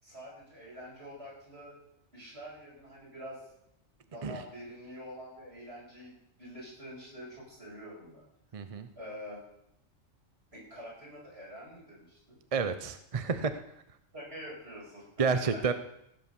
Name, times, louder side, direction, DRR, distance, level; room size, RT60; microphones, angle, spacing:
voice 1, 0.0-1.7 2.1-3.4 4.1-8.2 9.0-9.4 10.5-12.4 14.1-15.0 15.3-15.4, equal, 55° right, -5 dB, 7.3 m, -46 dB
voice 2, 8.5-8.9 12.5-13.6 15.2-15.7, right 5 dB, 35° right, 10 dB, 0.6 m, -30 dB
16.5 x 8.3 x 7.0 m, 0.78 s
omnidirectional pair, 1.3 m